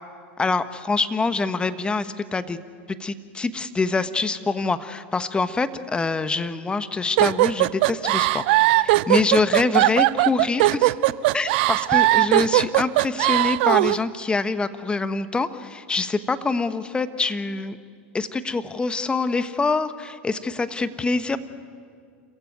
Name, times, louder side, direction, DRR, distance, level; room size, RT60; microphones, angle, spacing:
voice 1, 0.4-2.6 2.9-8.4 8.8-10.9 11.3-17.8 18.1-21.4, left 3 dB, 15° left, 12 dB, 1.3 m, -25 dB
sound 1, 7.2-14.0, right 19 dB, 60° right, 0.6 m, -19 dB
27.0 x 15.5 x 9.4 m, 2.2 s
hypercardioid pair, 95°, 6 cm